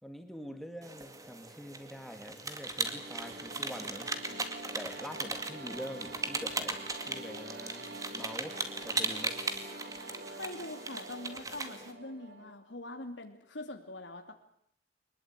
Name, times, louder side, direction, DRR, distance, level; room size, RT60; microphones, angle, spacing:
voice 1, 0.0-4.1 4.7-9.3, equal, ahead, 5 dB, 2.8 m, -45 dB
sound 1, 0.8-11.9, right 3 dB, 20° right, 2.2 m, -38 dB
sound 2, 2.4-12.5, right 1 dB, 55° right, 3.1 m, -47 dB
voice 2, 10.3-14.3, left 2 dB, 80° left, 5 dB, 2.7 m, -43 dB
24.0 x 21.0 x 9.0 m, 0.69 s
head